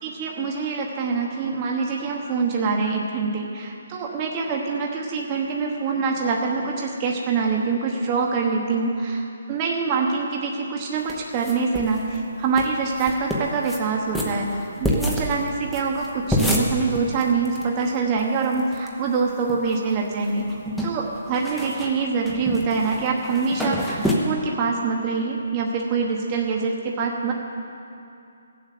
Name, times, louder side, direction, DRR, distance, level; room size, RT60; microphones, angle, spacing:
voice 1, 0.0-14.5 14.8-27.3, right 4 dB, 20° right, -1 dB, 1.1 m, -25 dB
sound 1, 11.1-12.0 12.2-12.3 12.6-12.7 13.0-13.8 14.1-17.7 17.9-18.0 18.2-18.9 19.3-19.9 20.2-24.1, equal, ahead, 0.9 m, -27 dB
15.5 x 7.5 x 6.8 m, 2.6 s
hypercardioid pair, 170°, 0 cm